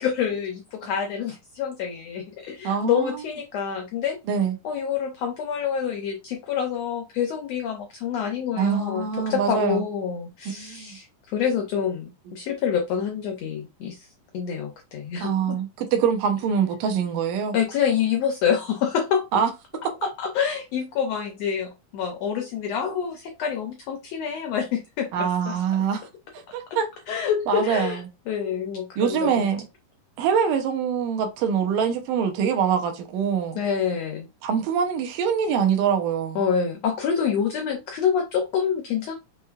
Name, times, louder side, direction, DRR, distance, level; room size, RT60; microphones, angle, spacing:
voice 1, 0.0-4.2 4.6-14.1 14.3-15.6 17.5-19.3 20.0-25.6 27.1-28.0 28.3-29.5 33.6-34.3 36.3-39.1, left 7 dB, 85° left, 1.4 m, -27 dB
voice 2, 2.6-3.2 4.3-4.6 8.6-9.8 10.5-11.0 15.2-17.6 19.3-19.5 19.8-19.9 25.1-26.1 26.5-26.9 27.5-28.1 29.0-29.6 30.2-33.6 34.4-36.4, right 7 dB, 85° right, 2.5 m, -24 dB
6.0 x 3.1 x 2.4 m
omnidirectional pair, 3.7 m